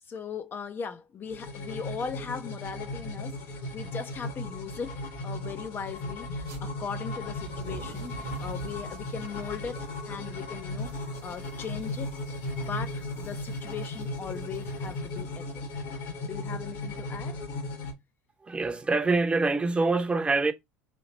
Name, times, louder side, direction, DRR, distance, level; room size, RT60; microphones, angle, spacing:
voice 1, 0.1-12.2 12.6-15.6 16.2-17.4, left 6 dB, 30° left, 0.5 m, -39 dB
sound 1, 1.2-17.9, left 2 dB, 60° left, 1.4 m, -36 dB
sound 2, 6.3-6.6 7.2-15.7, right 5 dB, 50° right, 1.0 m, -48 dB
voice 2, 18.4-20.5, right 3 dB, 15° right, 0.7 m, -25 dB
4.2 x 2.8 x 2.8 m
figure-of-eight pair, 70°, 7 cm